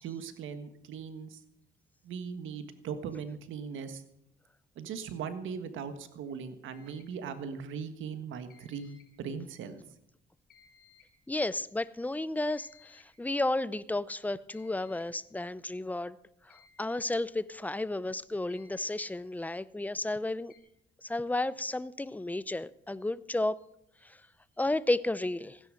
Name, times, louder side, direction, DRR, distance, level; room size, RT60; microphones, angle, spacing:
voice 1, 0.0-1.4 2.0-4.0 4.7-9.8, right 6 dB, 80° right, 1.5 m, -39 dB
sound 1, 6.7-7.2 8.5-9.2 10.5-11.2 12.5-13.2 14.5-15.2 16.5-17.2 18.5-19.2 20.5-20.6, left 6 dB, 50° left, 4.8 m, -61 dB
voice 2, 11.3-16.2 16.5-20.5 21.0-23.6 24.0-24.2 24.6-25.6, left 2 dB, 10° left, 0.6 m, -32 dB
16.5 x 10.0 x 6.4 m
cardioid pair, 90°, 20 cm